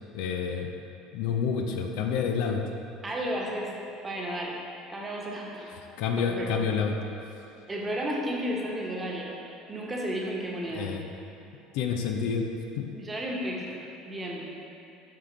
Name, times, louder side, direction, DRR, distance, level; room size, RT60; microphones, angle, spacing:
voice 1, 0.1-0.7 1.1-2.6 5.7-7.0 10.7-11.0 11.7-12.5 12.8-12.9, left 6 dB, 65° left, 3 dB, 0.4 m, -29 dB
voice 2, 3.0-3.7 4.0-4.6 4.9-5.7 6.2-6.5 7.7-9.4 9.7-10.9 12.9-13.8 14.0-14.5, equal, 25° right, -2 dB, 1.1 m, -33 dB
6.8 x 4.9 x 3.3 m, 2.8 s
figure-of-eight pair, 65°, 0 cm